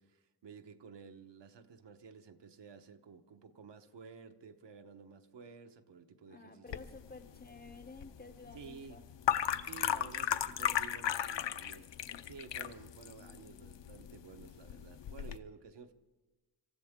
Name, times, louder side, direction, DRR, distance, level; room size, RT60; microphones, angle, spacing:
voice 1, 0.0-6.8 7.4-7.5 8.5-9.0 9.6-11.9 12.2-15.9, right 5 dB, 70° right, 7 dB, 1.2 m, -53 dB
voice 2, 6.3-9.0, left 3 dB, 20° left, 10 dB, 0.6 m, -52 dB
sound 1, 6.7-15.4, left 10 dB, 75° left, 0.7 m, -37 dB
26.0 x 14.5 x 3.7 m, 1.2 s
wide cardioid pair, 140°, 44 cm